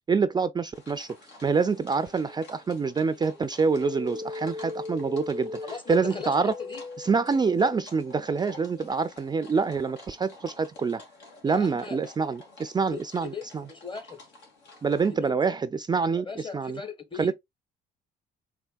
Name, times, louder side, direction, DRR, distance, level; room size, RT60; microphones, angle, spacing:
voice 1, 0.1-1.1 1.4-5.5 5.9-6.5 7.0-11.0 11.4-13.6 14.8-16.8 17.2-17.3, right 5 dB, 25° right, 0.4 m, -26 dB
sound 1, 0.7-15.2, left 2 dB, 80° left, 2.1 m, -51 dB
sound 2, 3.7-8.9, left 3 dB, 55° left, 2.6 m, -39 dB
voice 2, 5.6-6.8 11.4-12.0 12.7-14.2 15.1-15.3 16.1-17.3, left 5 dB, 30° left, 1.2 m, -39 dB
4.5 x 3.6 x 2.3 m
cardioid pair, 85°, 18 cm